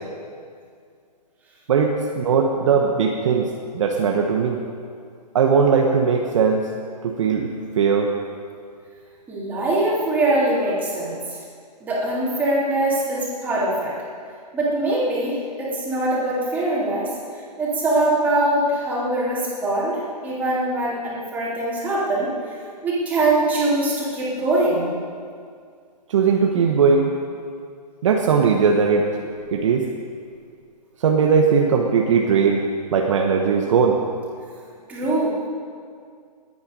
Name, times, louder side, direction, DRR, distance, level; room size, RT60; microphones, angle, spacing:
voice 1, 1.7-4.6 5.3-6.6 7.0-7.5 7.8-8.1 26.1-27.1 28.0-29.1 29.5-29.9 31.0-34.0, right 5 dB, 45° right, 1 dB, 1.3 m, -19 dB
voice 2, 9.3-11.4 11.8-13.9 14.5-17.1 17.6-22.3 22.8-24.9 34.9-35.5, right 2 dB, 10° right, -7 dB, 3.3 m, -22 dB
20.0 x 9.4 x 5.4 m, 2.2 s
hypercardioid pair, 160°, 21 cm